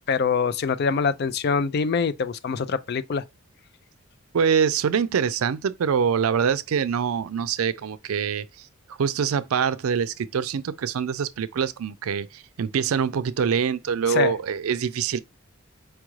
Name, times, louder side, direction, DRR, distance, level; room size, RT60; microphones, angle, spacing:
voice 1, 0.1-3.2 14.1-14.3, left 5 dB, 50° left, 0.4 m, -24 dB
voice 2, 4.3-8.5 8.9-15.2, right 7 dB, 85° right, 0.4 m, -24 dB
4.7 x 2.3 x 3.1 m
head